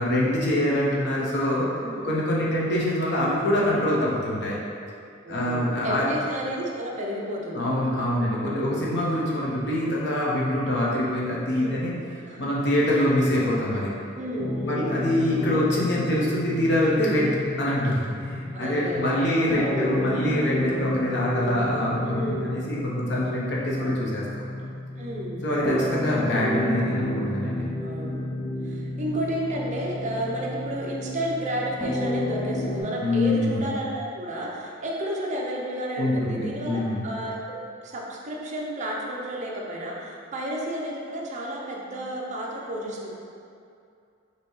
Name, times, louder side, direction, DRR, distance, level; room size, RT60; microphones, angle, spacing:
voice 1, 0.0-1.6 2.0-4.6 5.3-6.1 7.5-11.9 12.4-13.9 14.6-17.3 17.6-24.5 25.4-27.6 33.0-33.6 36.0-37.0, left 1 dB, 60° left, -5 dB, 0.9 m, -25 dB
voice 2, 1.8-2.2 5.2-7.9 8.6-9.0 11.5-11.8 12.3-12.6 14.1-15.0 18.5-20.0 22.1-22.5 23.8-24.2 25.0-25.4 27.8-28.3 28.6-43.1, right 1 dB, 40° right, -3 dB, 0.6 m, -32 dB
sound 1, 14.4-32.8, left 1 dB, 25° left, 0.5 m, -31 dB
5.4 x 3.0 x 3.1 m, 2.4 s
head